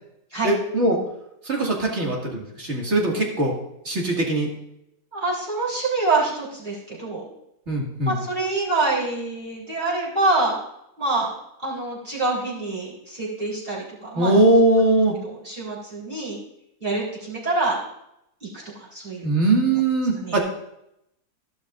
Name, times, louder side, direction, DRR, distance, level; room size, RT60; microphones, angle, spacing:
voice 1, 0.4-1.0 1.5-3.5 3.9-4.5 7.7-8.1 14.2-15.1 19.2-20.4, right 2 dB, 45° right, -1 dB, 2.4 m, -20 dB
voice 2, 5.1-7.3 8.0-10.6 11.0-11.3 11.6-14.3 15.2-16.4 16.8-17.8 18.4-18.6 18.9-19.3 20.2-20.4, right 2 dB, 30° right, -8 dB, 3.9 m, -26 dB
13.5 x 11.5 x 2.5 m, 0.80 s
omnidirectional pair, 1.7 m